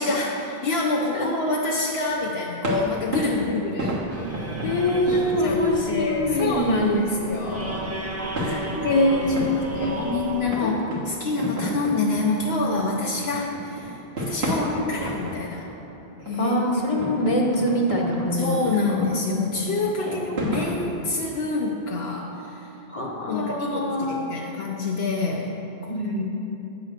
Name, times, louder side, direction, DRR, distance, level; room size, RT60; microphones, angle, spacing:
voice 1, 0.0-4.0 5.1-7.8 8.6-15.6 16.3-16.5 16.9-17.0 17.7-22.7 23.3-25.9, left 3 dB, 75° left, -1 dB, 0.9 m, -27 dB
sound 1, 2.0-20.8, equal, 75° right, 1.7 m, -33 dB
sound 2, 4.1-10.4, right 2 dB, 20° right, 0.5 m, -34 dB
voice 2, 4.6-7.1 8.4-10.0 10.6-10.7 11.5-11.7 14.5-14.8 16.4-19.1 20.0-20.3 22.9-24.3 25.9-26.2, left 1 dB, 35° left, 0 dB, 0.9 m, -24 dB
8.9 x 4.1 x 6.5 m, 3.0 s
omnidirectional pair, 1.1 m